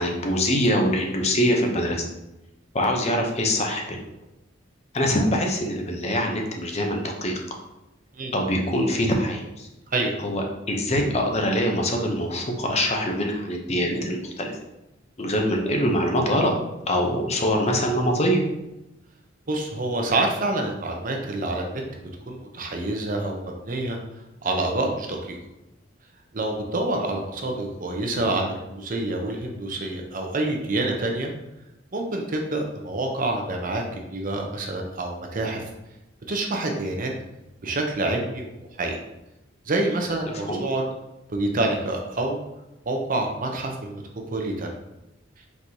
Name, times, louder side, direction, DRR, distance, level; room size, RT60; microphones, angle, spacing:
voice 1, 0.0-2.0 2.7-4.1 4.9-7.6 8.3-9.7 10.2-14.6 15.2-16.5 16.9-18.5 40.5-40.6, equal, 35° left, 2 dB, 0.6 m, -24 dB
voice 2, 19.5-24.0 24.4-25.4 26.3-31.3 31.9-35.6 36.3-37.1 37.6-38.5 38.8-39.0 39.7-40.8 41.3-42.4 42.9-44.0 44.3-44.7, right 2 dB, 45° right, 2 dB, 0.7 m, -27 dB
4.6 x 3.9 x 2.7 m, 0.94 s
head